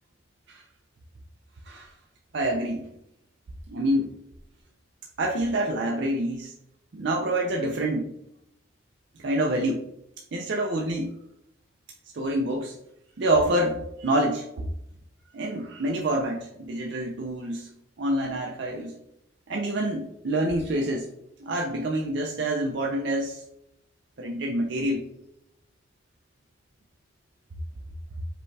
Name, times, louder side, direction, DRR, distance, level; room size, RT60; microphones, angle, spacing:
voice 1, 2.3-2.9 3.7-4.2 5.2-6.5 6.9-8.1 9.2-9.8 10.3-11.1 12.1-12.8 13.2-14.7 15.3-17.7 18.0-19.0 19.5-21.1 21.4-23.4 24.2-25.1, right 1 dB, 60° right, 0 dB, 0.4 m, -27 dB
5.0 x 2.2 x 3.2 m, 0.78 s
head